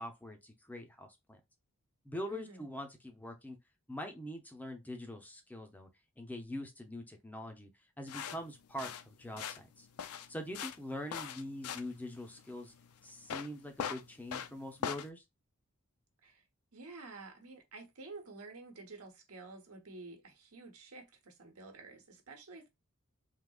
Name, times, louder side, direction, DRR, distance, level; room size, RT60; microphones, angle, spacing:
voice 1, 0.0-1.4 2.0-3.6 3.9-5.9 6.2-7.7 8.0-9.9 10.3-12.7 13.0-15.2, left 1 dB, 5° left, 0.5 m, -43 dB
voice 2, 2.3-2.6 16.2-16.4 16.7-22.7, right 3 dB, 75° right, 1.0 m, -50 dB
sound 1, 8.1-15.1, left 7 dB, 85° left, 0.5 m, -42 dB
3.6 x 2.8 x 2.3 m
head